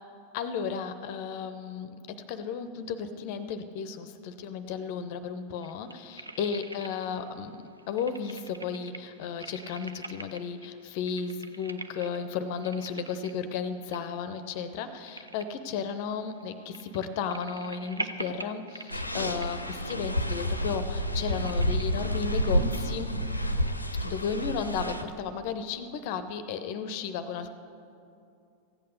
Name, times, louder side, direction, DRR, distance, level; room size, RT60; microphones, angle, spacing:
voice 1, 0.3-7.6 7.9-23.1 24.0-27.5, left 6 dB, 45° left, 10 dB, 0.7 m, -34 dB
sound 1, 5.6-7.3 7.6-22.0, right 3 dB, 80° right, 0.5 m, -44 dB
sound 2, 18.9-25.0, equal, 85° left, 0.7 m, -29 dB
14.5 x 8.6 x 6.7 m, 2.6 s
figure-of-eight pair, 90°, 0 cm